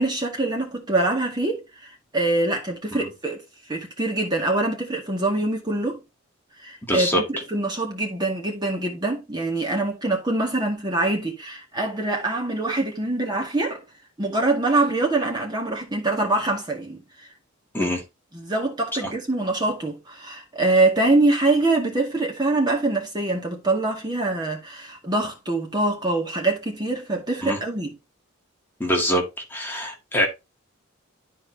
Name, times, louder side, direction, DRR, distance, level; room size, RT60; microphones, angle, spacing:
voice 1, 0.0-3.4 3.7-6.0 6.6-13.8 14.2-17.0 17.8-17.9 18.3-27.9, right 2 dB, 20° right, 1.9 m, -24 dB
voice 2, 6.9-7.2 17.7-18.0 19.0-19.1 27.4-27.6 28.8-29.2 29.5-30.3, equal, 10° left, 1.8 m, -23 dB
12.5 x 4.6 x 2.8 m
head